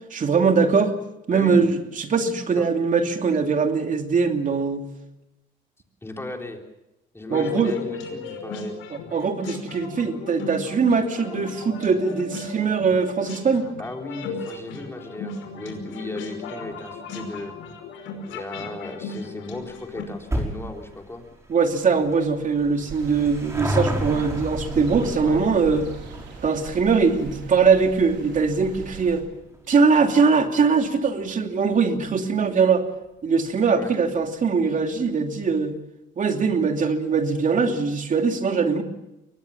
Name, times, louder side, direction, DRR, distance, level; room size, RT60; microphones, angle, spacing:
voice 1, 0.1-0.9 1.3-4.8 7.3-7.7 9.1-13.7 21.5-25.9 26.4-29.2 29.7-32.8 33.2-35.7 36.2-38.8, right 5 dB, 40° right, 5 dB, 2.8 m, -21 dB
voice 2, 1.3-1.7 2.6-2.7 6.0-6.6 7.1-8.7 13.8-17.5 18.2-21.2 25.2-25.4 33.8-33.9, left 2 dB, 10° left, 2 dB, 4.1 m, -36 dB
sound 1, 7.3-20.0, left 4 dB, 90° left, 5.3 m, -36 dB
sound 2, 19.5-32.3 32.6-32.7 33.6-33.7 33.9-34.0 34.2-34.3, equal, 15° right, 6.0 m, -34 dB
sound 3, 22.9-29.2, right 6 dB, 65° right, 4.9 m, -39 dB
23.5 x 19.5 x 7.2 m, 0.91 s
cardioid pair, 100°, 20 cm